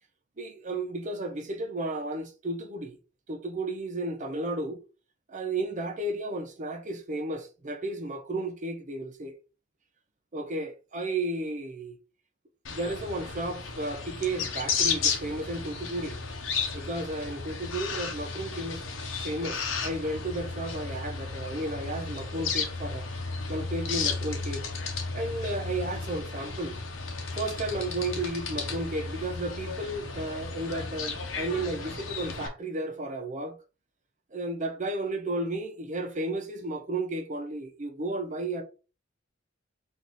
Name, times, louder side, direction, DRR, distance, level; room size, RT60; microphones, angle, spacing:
voice 1, 0.4-3.0 3.3-4.8 5.3-9.3 10.3-12.0 12.7-16.2 16.7-18.8 19.2-23.1 23.5-24.6 25.1-26.7 27.3-33.6 34.3-38.6, right 2 dB, 40° right, 0.8 m, -33 dB
sound 1, 12.6-32.5, left 4 dB, 85° left, 1.0 m, -34 dB
4.1 x 2.6 x 4.7 m
head